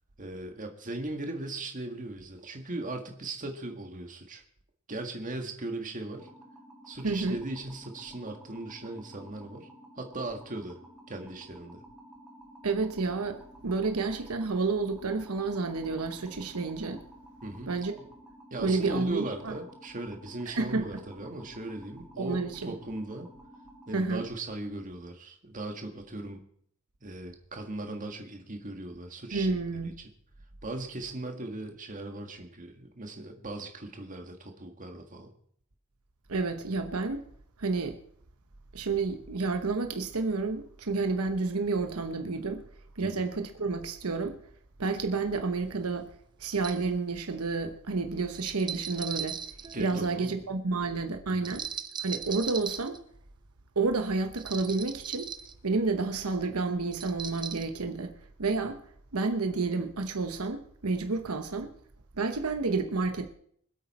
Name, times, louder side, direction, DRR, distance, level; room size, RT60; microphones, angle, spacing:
voice 1, 0.2-4.4 4.9-6.3 6.9-9.7 9.9-10.8 11.1-11.8 17.4-17.8 18.5-23.3 23.9-26.4 27.0-29.5 29.8-30.1 30.6-35.3 43.0-43.2 49.7-50.3 51.3-51.6, right 2 dB, 35° right, 1.7 m, -38 dB
sound 1, 6.2-24.0, right 1 dB, 5° right, 2.4 m, -52 dB
voice 2, 7.0-7.4 12.6-17.0 17.7-18.0 18.6-19.5 20.5-20.9 22.2-22.7 23.9-24.2 29.3-30.0 36.3-37.2 37.6-38.0 38.7-42.6 43.0-44.4 44.8-46.1 46.4-49.4 49.8-51.7 52.0-53.0 53.8-55.3 55.6-58.8 59.1-61.7 62.1-63.3, right 3 dB, 85° right, 1.1 m, -30 dB
sound 2, 45.6-45.7 46.5-46.9 48.4-50.2 51.5-53.0 54.4-55.5 56.9-57.6, right 7 dB, 20° right, 0.6 m, -38 dB
24.5 x 8.4 x 4.3 m
head